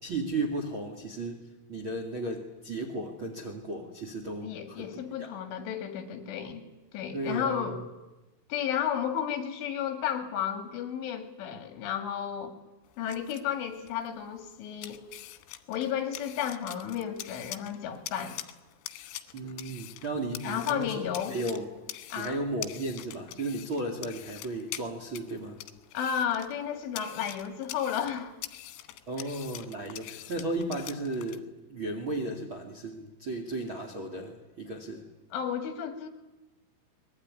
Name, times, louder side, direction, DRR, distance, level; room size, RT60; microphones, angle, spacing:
voice 1, 0.0-1.4 1.7-4.9 5.2-5.3 7.1-7.8 19.3-21.7 22.2-25.6 29.1-35.1, right 2 dB, 40° right, 2 dB, 1.9 m, -35 dB
voice 2, 4.4-6.6 6.9-7.8 8.5-12.5 13.0-15.1 15.7-18.4 20.4-21.4 22.1-22.4 25.9-28.3 35.3-36.1, left 9 dB, 70° left, 6 dB, 4.6 m, -32 dB
sound 1, 12.8-31.4, left 14 dB, 85° left, 3.7 m, -45 dB
23.5 x 21.0 x 9.7 m, 1.1 s
omnidirectional pair, 5.9 m